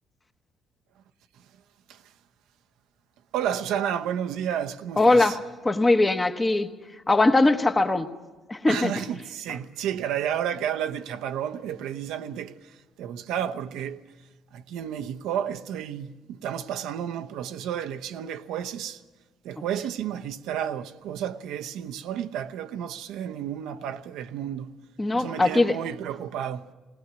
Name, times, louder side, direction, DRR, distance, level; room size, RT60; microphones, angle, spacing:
voice 1, 3.3-5.4 8.7-14.0 14.5-19.0 19.4-24.7 25.1-26.7, right 9 dB, 80° right, 0.8 m, -31 dB
voice 2, 5.0-5.4 5.6-6.7 7.1-8.1 8.5-8.9 25.0-25.8, left 2 dB, 15° left, 1.0 m, -20 dB
20.0 x 19.5 x 8.1 m
cardioid pair, 135°, 0 cm